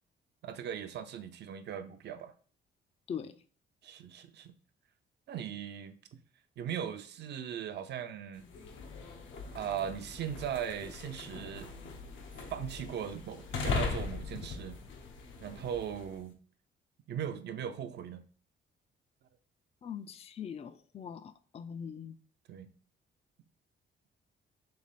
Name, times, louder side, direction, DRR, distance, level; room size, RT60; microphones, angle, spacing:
voice 1, 0.4-2.3 3.8-4.5 5.3-6.0 6.6-8.5 9.5-11.7 12.5-14.8 15.4-16.3 17.1-18.2 22.5-22.7, right 9 dB, 60° right, 0.5 m, -39 dB
sound 1, 8.4-16.2, left 4 dB, 75° left, 0.7 m, -40 dB
voice 2, 19.8-22.2, left 7 dB, 30° left, 0.3 m, -42 dB
3.3 x 3.2 x 4.1 m
cardioid pair, 90°, 20 cm